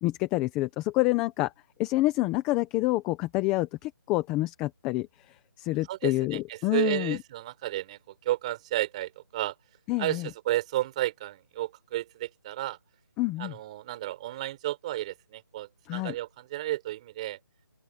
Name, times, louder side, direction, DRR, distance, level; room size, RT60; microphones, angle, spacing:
voice 1, 0.0-1.5 1.8-7.2 9.9-10.3 13.2-13.5 15.9-16.1, left 19 dB, 5° left, 0.6 m, -28 dB
voice 2, 5.9-9.5 10.0-12.8 13.4-17.4, right 15 dB, 20° right, 4.2 m, -32 dB
open air
hypercardioid pair, 175°, 11 cm